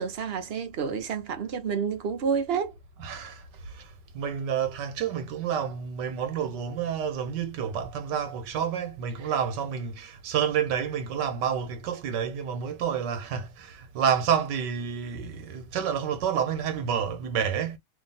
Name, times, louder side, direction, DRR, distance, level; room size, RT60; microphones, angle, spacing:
voice 1, 0.0-2.7 9.2-9.3, right 6 dB, 50° right, 0.8 m, -29 dB
voice 2, 3.0-17.8, right 8 dB, 80° right, 1.5 m, -29 dB
3.0 x 2.7 x 4.1 m
omnidirectional pair, 1.8 m